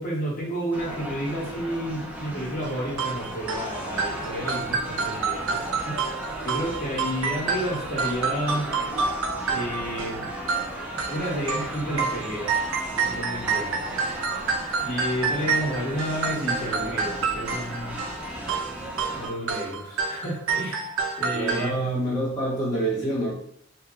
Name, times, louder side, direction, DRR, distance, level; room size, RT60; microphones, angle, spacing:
voice 1, 0.0-8.6 9.5-10.3 11.1-12.6 12.9-14.1 14.8-18.0 19.1-21.7, equal, 45° left, -4 dB, 1.2 m, -31 dB
sound 1, 0.7-19.3, equal, 5° right, 0.6 m, -36 dB
sound 2, 2.6-21.7, right 5 dB, 80° right, 0.5 m, -29 dB
voice 2, 21.3-23.3, right 1 dB, 20° left, -8 dB, 0.9 m, -26 dB
2.9 x 2.2 x 3.6 m, 0.65 s
head